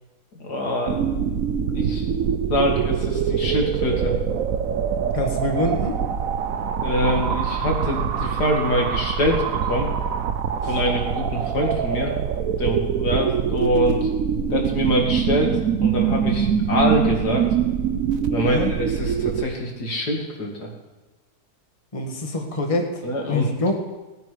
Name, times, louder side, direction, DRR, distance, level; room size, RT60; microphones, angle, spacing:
voice 1, 0.4-1.2 1.7-2.0 2.5-4.1 6.8-9.9 10.6-12.1 12.6-14.1 14.5-17.5 18.3-20.7 23.0-23.5, equal, 90° left, 0 dB, 2.9 m, -24 dB
sound 1, 0.9-19.4, right 7 dB, 65° right, 1.2 m, -24 dB
voice 2, 5.1-6.0 10.6-10.8 18.4-18.7 21.9-23.8, left 2 dB, 20° left, 2 dB, 1.7 m, -25 dB
18.0 x 9.4 x 5.1 m, 1.1 s
omnidirectional pair, 1.7 m